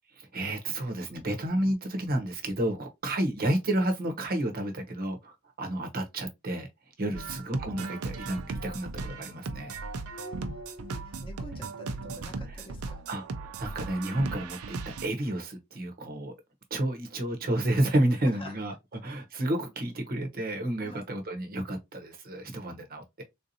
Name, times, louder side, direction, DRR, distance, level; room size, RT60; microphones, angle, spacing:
voice 1, 0.2-6.7 7.0-9.7 13.1-16.3 16.7-23.2, right 1 dB, 45° right, 0.8 m, -31 dB
sound 1, 7.1-15.1, right 3 dB, 90° right, 0.5 m, -37 dB
voice 2, 10.1-13.0 18.2-18.6 20.8-21.0, left 1 dB, 25° left, 0.8 m, -47 dB
3.6 x 2.7 x 2.6 m
head